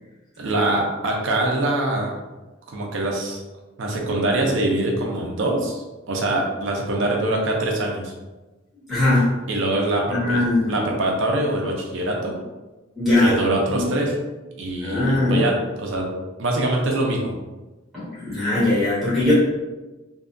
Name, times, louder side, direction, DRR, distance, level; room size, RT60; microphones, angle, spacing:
voice 1, 0.4-2.1 2.7-3.4 3.8-8.1 9.5-12.4 13.2-14.2 14.6-16.1 16.4-17.3, right 1 dB, 65° right, 0 dB, 0.5 m, -23 dB
voice 2, 8.9-9.3 10.1-10.8 13.0-13.3 13.7-13.8 14.8-15.4 17.9-19.3, left 2 dB, ahead, -12 dB, 1.2 m, -20 dB
2.6 x 2.3 x 2.4 m, 1.1 s
head